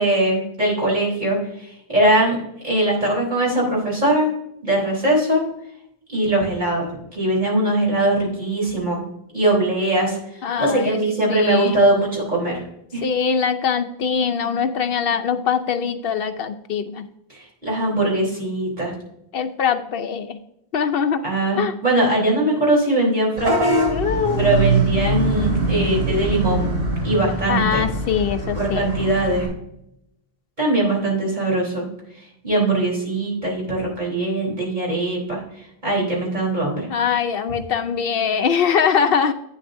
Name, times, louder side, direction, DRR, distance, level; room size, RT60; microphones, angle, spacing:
voice 1, 0.0-2.4 2.6-4.3 4.6-5.4 6.1-9.0 9.3-10.2 10.6-12.6 12.9-13.0 17.3-18.9 21.2-23.8 24.4-26.8 27.0-27.8 28.6-29.5 30.6-31.9 32.4-35.4 35.8-36.9, right 1 dB, 45° right, -3 dB, 3.8 m, -21 dB
voice 2, 10.4-11.0 11.3-11.8 13.0-17.1 19.3-20.4 20.7-21.2 21.6-21.7 23.9-24.4 27.5-28.9 36.9-39.3, left 7 dB, 65° left, 8 dB, 0.8 m, -22 dB
Vehicle horn car horn honking / Bus, 23.4-29.5, right 2 dB, 90° right, 3.0 m, -23 dB
11.5 x 8.5 x 2.6 m, 0.80 s
omnidirectional pair, 1.1 m